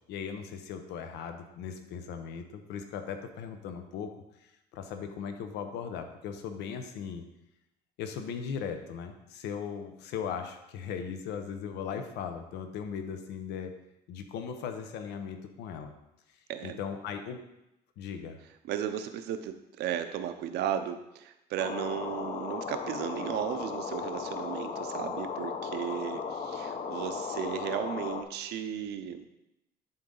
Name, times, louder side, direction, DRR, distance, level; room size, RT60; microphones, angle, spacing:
voice 1, 0.1-4.1 4.4-7.2 8.0-13.7 14.1-15.9 16.6-17.4 18.0-18.4, left 7 dB, 85° left, 7 dB, 0.8 m, -38 dB
voice 2, 18.6-29.3, right 9 dB, 80° right, 9 dB, 0.7 m, -35 dB
sound 1, 21.6-28.2, left 5 dB, 40° left, 0.7 m, -36 dB
10.5 x 4.0 x 3.9 m, 0.87 s
cardioid pair, 110°, 17 cm